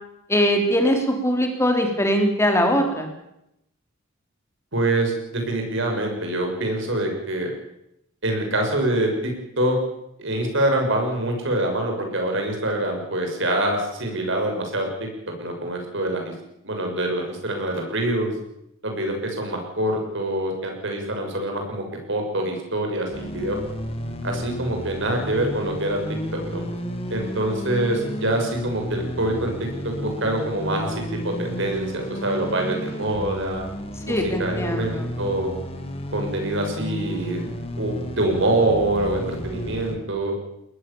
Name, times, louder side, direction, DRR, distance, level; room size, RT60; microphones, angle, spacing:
voice 1, 0.3-3.1 34.1-35.0, equal, 15° left, 4 dB, 3.8 m, -21 dB
voice 2, 4.7-7.5 8.2-9.8 10.2-15.1 15.4-16.3 16.6-18.3 18.8-23.6 24.2-26.0 26.3-26.6 27.1-33.6 34.0-35.5 36.1-37.4 37.8-40.3, right 1 dB, 60° right, 3 dB, 6.8 m, -25 dB
sound 1, 23.1-40.0, equal, 30° left, 2.8 m, -32 dB
22.0 x 20.0 x 7.2 m, 0.82 s
head